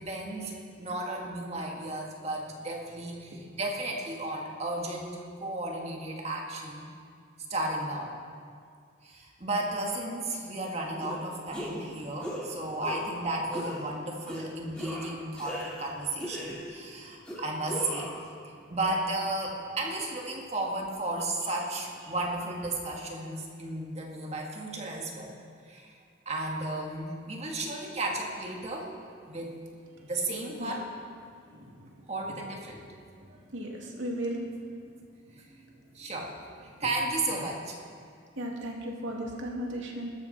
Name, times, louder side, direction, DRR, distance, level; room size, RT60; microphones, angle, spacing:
voice 1, 0.0-6.9 7.5-8.2 9.0-18.2 18.4-25.4 25.7-26.0 26.3-28.9 29.3-29.5 30.1-30.9 32.1-32.9 33.3-33.4 35.4-35.5 35.9-36.4 36.8-37.8, right 2 dB, 35° right, 0 dB, 1.8 m, -34 dB
sound 1, 11.0-11.2 11.5-11.9 12.2-12.5 12.8-13.2 13.5-13.8 14.3-14.4 14.7-15.9 16.2-16.8 17.2-18.2, equal, 5° left, 2.8 m, -38 dB
voice 2, 33.5-34.4 38.4-40.1, right 1 dB, 70° right, -1 dB, 2.6 m, -35 dB
20.5 x 13.0 x 4.3 m, 2.2 s
head